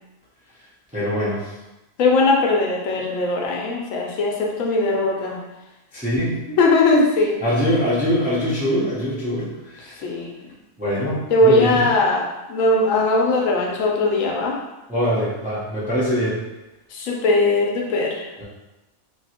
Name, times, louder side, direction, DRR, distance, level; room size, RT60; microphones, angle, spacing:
voice 1, 0.9-1.5 5.9-6.4 7.4-10.0 10.8-11.8 14.9-16.4 18.4-18.5, equal, 10° right, -8 dB, 0.4 m, -23 dB
voice 2, 2.0-5.4 6.6-7.4 10.0-10.3 11.3-14.6 16.9-18.2, left 2 dB, 80° left, -1 dB, 1.0 m, -19 dB
2.9 x 2.6 x 2.8 m, 1.0 s
omnidirectional pair, 1.4 m